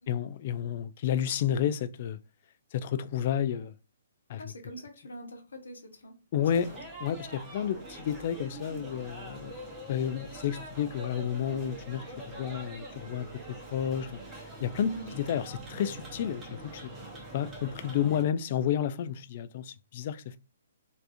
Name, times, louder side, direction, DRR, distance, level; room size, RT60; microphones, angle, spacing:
voice 1, 0.1-2.2 2.7-3.8 4.3-4.4 6.3-6.7 7.0-9.6 9.9-13.3 13.7-14.2 14.6-16.9 17.3-20.4, left 9 dB, 40° left, 0.3 m, -31 dB
voice 2, 4.4-6.8 14.8-15.1, equal, 70° left, 0.9 m, -43 dB
sound 1, 6.4-18.2, right 1 dB, 15° right, 0.9 m, -44 dB
3.3 x 2.6 x 2.6 m
figure-of-eight pair, 125°, 0 cm